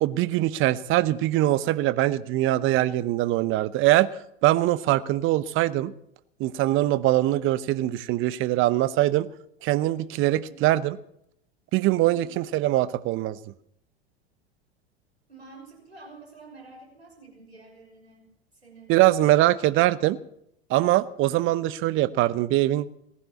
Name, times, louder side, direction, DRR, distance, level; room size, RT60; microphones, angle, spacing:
voice 1, 0.0-4.1 4.4-5.9 6.4-9.3 9.6-10.9 11.7-13.4 18.9-20.2 20.7-22.9, right 15 dB, 40° right, 17 dB, 0.8 m, -22 dB
voice 2, 12.1-12.4 15.3-18.3 18.5-19.0, right 3 dB, 85° right, 0 dB, 6.1 m, -48 dB
18.5 x 11.0 x 7.1 m, 0.76 s
figure-of-eight pair, 80°, 32 cm